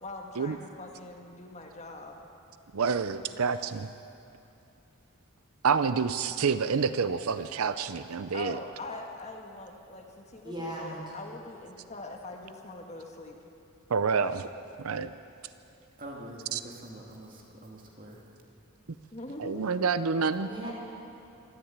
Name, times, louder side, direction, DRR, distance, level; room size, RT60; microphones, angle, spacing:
voice 1, 0.0-2.2 8.3-13.4 19.1-19.8, left 2 dB, 30° left, 2 dB, 1.6 m, -42 dB
voice 2, 2.7-3.9 5.6-8.6 13.9-14.5 14.8-15.1 16.5-16.6 19.4-20.5, right 5 dB, 85° right, 12 dB, 0.6 m, -28 dB
voice 3, 10.4-11.3 20.5-20.7, right 1 dB, 20° right, -4 dB, 5.2 m, -38 dB
voice 4, 16.0-18.2, right 1 dB, 40° right, -1 dB, 2.5 m, -45 dB
24.5 x 13.5 x 8.9 m, 2.7 s
head